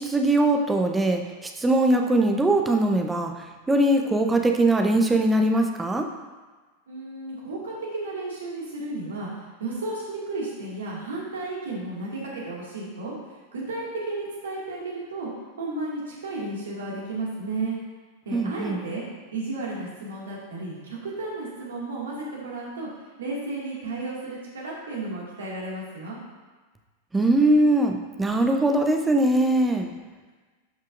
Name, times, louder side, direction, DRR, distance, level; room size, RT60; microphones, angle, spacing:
voice 1, 0.0-6.1 18.3-18.8 27.1-29.9, right 1 dB, 10° right, 4 dB, 0.7 m, -21 dB
voice 2, 6.9-9.3 9.6-13.1 13.5-15.3 15.6-17.8 18.3-19.1 19.3-22.9 23.2-26.2, right 2 dB, 65° right, -4 dB, 2.1 m, -33 dB
11.0 x 5.5 x 2.6 m, 1.3 s
figure-of-eight pair, 90°, 0 cm